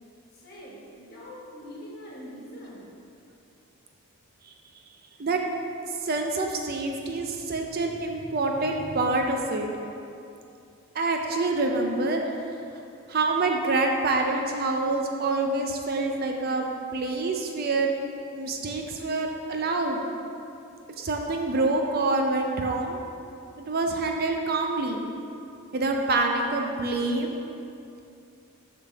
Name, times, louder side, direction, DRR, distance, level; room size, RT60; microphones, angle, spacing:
voice 1, 0.3-2.9, equal, 45° left, -6 dB, 1.5 m, -43 dB
voice 2, 6.0-9.7 10.9-12.2 13.1-16.7 16.9-17.9 18.3-20.1 21.0-23.0 23.6-25.0 25.7-27.3, right 2 dB, 45° right, 2 dB, 0.5 m, -26 dB
6.9 x 5.8 x 3.4 m, 2.6 s
head